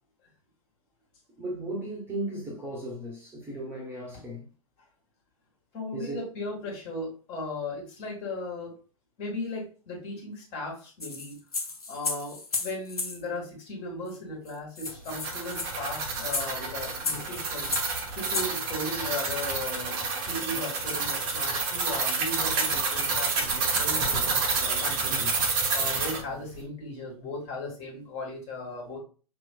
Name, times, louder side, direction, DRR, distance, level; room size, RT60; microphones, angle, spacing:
voice 1, 1.4-4.5 5.9-6.3 25.1-25.3, right 1 dB, 15° right, 1.0 m, -36 dB
voice 2, 5.7-8.7 9.2-11.3 11.9-17.7 18.1-20.0 20.3-25.2 25.7-29.0, left 2 dB, 35° left, 1.7 m, -37 dB
sound 1, 11.0-13.2 14.1-14.2 14.5-14.6 14.8-18.5, left 3 dB, 80° left, 0.8 m, -33 dB
sound 2, 14.9-26.2, right 4 dB, 35° right, 0.9 m, -29 dB
5.2 x 3.0 x 2.2 m
figure-of-eight pair, 105°, 19 cm